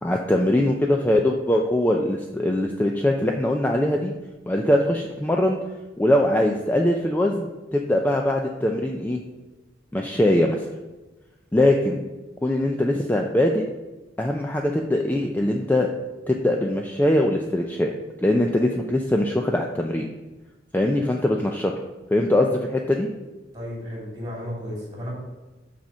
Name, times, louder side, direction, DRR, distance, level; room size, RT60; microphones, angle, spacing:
voice 1, 0.0-4.1 4.5-5.6 6.0-9.2 9.9-10.7 11.5-12.0 12.4-13.6 14.2-15.9 16.3-17.9 18.2-20.1 20.7-21.7 22.1-23.1, left 1 dB, 10° left, 1 dB, 0.4 m, -22 dB
voice 2, 23.5-25.1, equal, 20° right, -4 dB, 2.6 m, -33 dB
6.1 x 4.2 x 6.1 m, 1.1 s
head